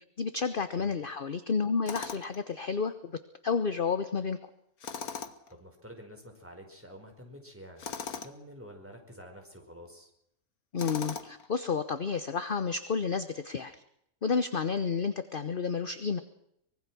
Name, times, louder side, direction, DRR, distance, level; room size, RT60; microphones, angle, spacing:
voice 1, 0.2-3.2 3.4-4.4 10.7-13.7 14.2-16.2, left 5 dB, 40° left, 11 dB, 1.1 m, -31 dB
Tools, 1.9-2.4 4.8-5.5 7.8-8.4 10.8-11.5, left 6 dB, 75° left, 1.9 m, -39 dB
voice 2, 5.5-10.1, equal, 10° right, 3 dB, 5.0 m, -49 dB
24.5 x 22.0 x 6.2 m, 0.75 s
omnidirectional pair, 1.6 m